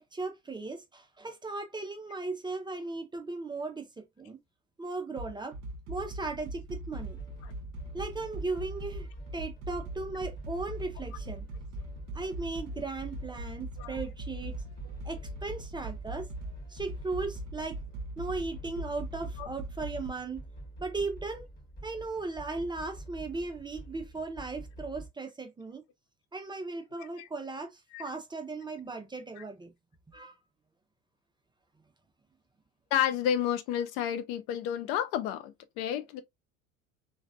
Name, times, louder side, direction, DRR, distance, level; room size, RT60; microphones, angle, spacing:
voice 1, 0.0-4.4 4.8-5.5 5.9-7.2 7.9-9.1 9.3-11.4 12.1-14.6 15.0-16.3 16.7-17.8 18.2-20.4 20.8-21.5 21.8-25.8 26.3-29.7 30.1-30.3, right 3 dB, 10° right, 0.6 m, -37 dB
sound 1, 5.2-20.1, right 2 dB, 45° right, 0.7 m, -41 dB
sound 2, 7.0-25.1, right 1 dB, 20° left, 1.3 m, -47 dB
voice 2, 32.9-36.2, left 10 dB, 50° left, 0.5 m, -31 dB
3.1 x 2.4 x 2.4 m
figure-of-eight pair, 70°, 41 cm